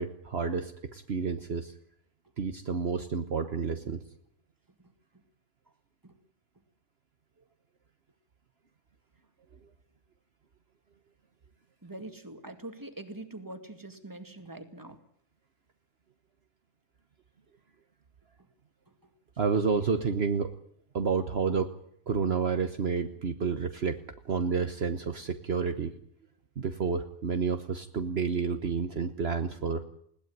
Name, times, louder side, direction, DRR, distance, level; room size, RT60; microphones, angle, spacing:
voice 1, 0.0-1.7 2.4-4.0 19.4-20.5 20.9-21.7 22.1-25.9 26.6-29.8, right 5 dB, 55° right, 9 dB, 1.3 m, -30 dB
voice 2, 11.8-15.0 19.0-19.1, right 2 dB, 15° right, 8 dB, 2.2 m, -44 dB
20.5 x 18.0 x 9.5 m, 0.69 s
omnidirectional pair, 1.3 m